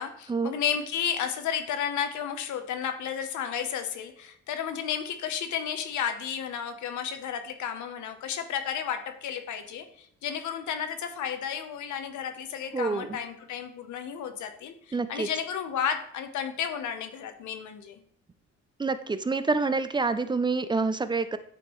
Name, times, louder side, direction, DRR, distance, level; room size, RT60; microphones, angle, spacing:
voice 1, 0.0-18.0, left 8 dB, 75° left, 8 dB, 0.8 m, -32 dB
voice 2, 12.7-13.2 14.9-15.3 18.8-21.4, right 4 dB, 15° right, 12 dB, 0.3 m, -27 dB
9.1 x 3.7 x 3.0 m, 0.66 s
cardioid pair, 90°, 30 cm